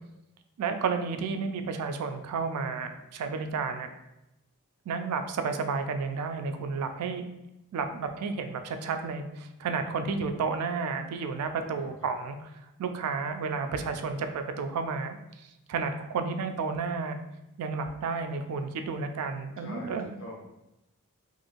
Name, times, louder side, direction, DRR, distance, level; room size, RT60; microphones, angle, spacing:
voice 1, 0.6-3.9 4.9-7.3 7.7-12.4 12.8-17.2 17.6-20.1, right 4 dB, 85° right, 7 dB, 0.3 m, -32 dB
voice 2, 11.6-12.1 19.6-20.5, left 1 dB, 60° left, -3 dB, 0.8 m, -44 dB
2.9 x 2.5 x 2.4 m, 0.90 s
head